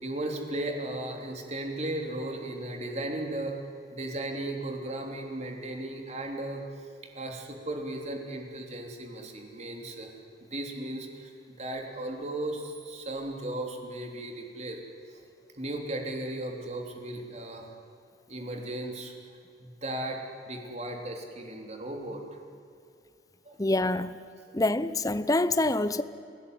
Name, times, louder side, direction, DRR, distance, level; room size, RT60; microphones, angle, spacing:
voice 1, 0.0-3.6 3.9-6.6 7.2-10.1 10.5-11.3 11.6-14.8 15.6-17.7 18.3-19.1 19.6-20.2 20.5-22.2 23.5-23.6, right 1 dB, 40° right, 3.4 m, -36 dB
voice 2, 23.6-24.2 24.5-26.0, left 2 dB, 20° left, 0.7 m, -26 dB
29.0 x 17.0 x 9.6 m
head